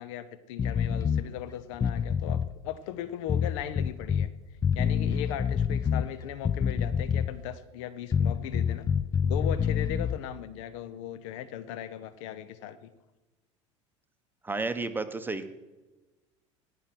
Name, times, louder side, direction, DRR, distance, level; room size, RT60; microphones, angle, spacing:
voice 1, 0.0-4.3 4.7-8.9 9.2-12.9, left 11 dB, 65° left, 13 dB, 0.9 m, -38 dB
sound 1, 0.6-1.3 1.7-2.5 3.3-4.3 4.6-6.1 6.4-7.4 8.1-10.2, left 7 dB, 20° left, 0.4 m, -27 dB
voice 2, 14.4-15.5, right 3 dB, 10° right, 10 dB, 1.1 m, -32 dB
18.0 x 6.0 x 6.1 m, 1.1 s
hypercardioid pair, 80°, 17 cm